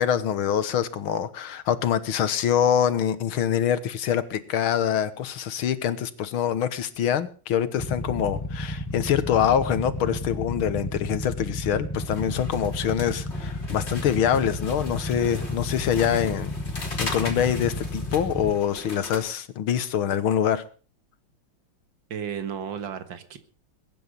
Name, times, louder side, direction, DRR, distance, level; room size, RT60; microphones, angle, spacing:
voice 1, 0.0-20.6, left 9 dB, 80° left, 13 dB, 2.0 m, -25 dB
Motorcycle / Idling, 7.8-18.5, left 1 dB, 10° left, 1.2 m, -32 dB
sound 1, 12.0-19.2, left 2 dB, 30° left, 3.4 m, -39 dB
voice 2, 22.1-23.4, right 8 dB, 65° right, 10 dB, 2.3 m, -33 dB
21.5 x 10.0 x 5.4 m, 0.39 s
omnidirectional pair, 2.3 m